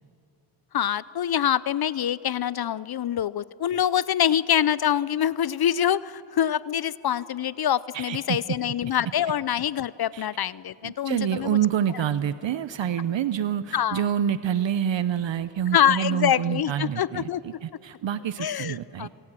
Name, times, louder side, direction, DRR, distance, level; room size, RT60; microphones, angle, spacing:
voice 1, 0.7-11.6 13.7-14.0 15.7-17.4 18.4-19.1, left 10 dB, 50° left, 20 dB, 0.6 m, -25 dB
voice 2, 7.9-8.4 10.1-10.3 10.8-19.1, right 9 dB, 65° right, 14 dB, 0.8 m, -27 dB
28.0 x 18.0 x 7.6 m, 2.9 s
cardioid pair, 65°, 49 cm